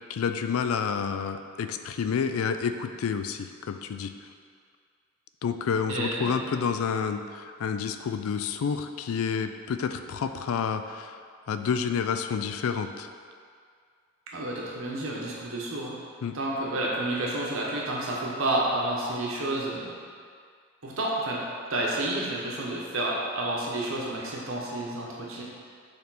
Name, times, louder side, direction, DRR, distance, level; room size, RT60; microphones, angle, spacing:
voice 1, 0.1-4.1 5.4-11.2 11.5-13.1 16.2-16.4, left 6 dB, 90° left, 9 dB, 0.4 m, -29 dB
voice 2, 5.9-6.5 14.3-16.0 16.3-19.9 20.8-21.4 21.7-25.4, right 1 dB, 70° right, -4 dB, 1.1 m, -30 dB
6.7 x 3.5 x 4.1 m, 2.1 s
head